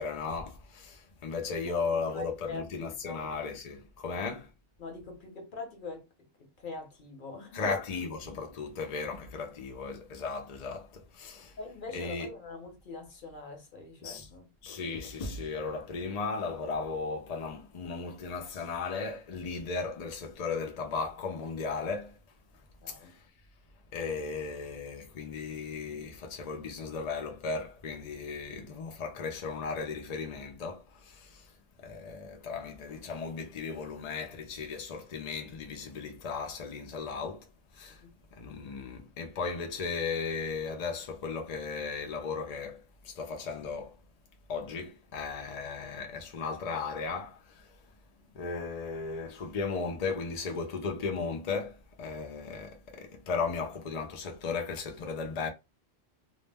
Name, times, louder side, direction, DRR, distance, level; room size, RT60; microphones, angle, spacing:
voice 1, 0.0-4.5 7.5-11.6 11.9-12.3 14.0-14.3 14.6-22.2 22.9-23.3 23.9-31.5 31.8-37.5 37.7-38.0 38.3-44.0 44.5-47.8 48.3-55.5, left 4 dB, 65° left, 0.3 m, -36 dB
voice 2, 2.1-3.2 4.0-4.2 4.8-7.8 11.6-14.5 22.8-23.1 37.9-38.1 48.2-48.3, left 3 dB, 45° left, 0.9 m, -43 dB
2.4 x 2.1 x 3.3 m
omnidirectional pair, 1.3 m